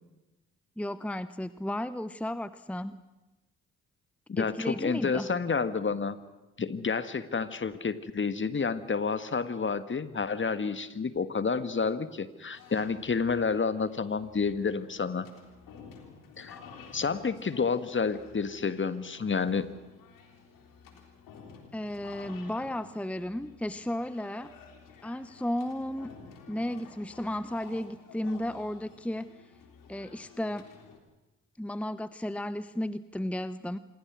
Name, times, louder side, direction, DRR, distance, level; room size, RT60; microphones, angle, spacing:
voice 1, 0.8-3.0 4.4-5.3 21.7-24.5 25.0-26.1 26.5-29.3 29.9-30.7 31.6-33.8, left 1 dB, 5° left, 14 dB, 1.0 m, -34 dB
voice 2, 4.3-6.2 6.6-15.3 16.4-16.6 16.9-19.7, left 5 dB, 35° left, 12 dB, 1.7 m, -30 dB
sound 1, 12.5-31.0, left 5 dB, 70° left, 3.7 m, -52 dB
26.5 x 22.5 x 6.3 m, 1.0 s
hypercardioid pair, 45°, 34 cm